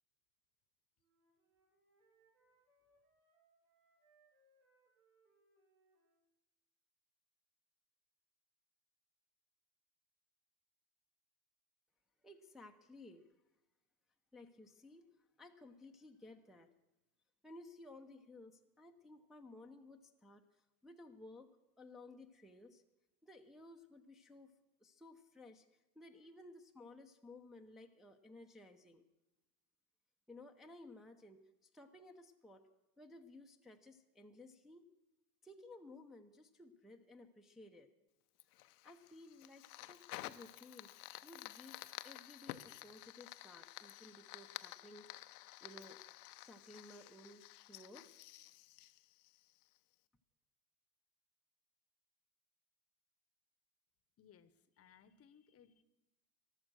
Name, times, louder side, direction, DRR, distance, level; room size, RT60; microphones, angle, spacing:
Wind instrument woodwind instrument, 1.0-6.3, right 2 dB, 80° right, 6.2 m, -75 dB
voice 1, 12.2-13.3 14.3-16.7 17.4-21.5 21.8-22.8 23.2-24.5 24.8-29.0 30.3-32.7 33.0-34.9 35.4-37.9 38.8-40.9 41.2-45.1 45.4-46.0 46.4-48.1, left 2 dB, ahead, 2 dB, 0.7 m, -57 dB
Fire, 38.4-49.8, left 17 dB, 80° left, 0.7 m, -52 dB
voice 2, 54.2-55.8, left 8 dB, 30° left, 15 dB, 0.9 m, -65 dB
14.0 x 11.5 x 6.2 m, 0.98 s
supercardioid pair, 105°, 45 cm